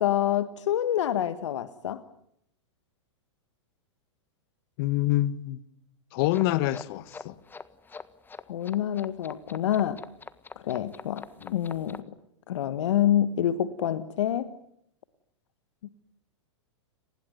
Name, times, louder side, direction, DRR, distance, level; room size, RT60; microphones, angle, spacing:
voice 1, 0.0-2.0 8.5-10.0 10.6-11.2 11.5-12.0 12.5-14.5 15.8-15.9, left 11 dB, 70° left, 1.5 m, -27 dB
voice 2, 4.8-5.6 6.1-7.4 11.4-11.6, left 15 dB, 50° left, 1.5 m, -26 dB
sound 1, 6.3-12.0, left 5 dB, 15° left, 1.5 m, -44 dB
30.0 x 20.5 x 9.5 m
hypercardioid pair, 120°, 16 cm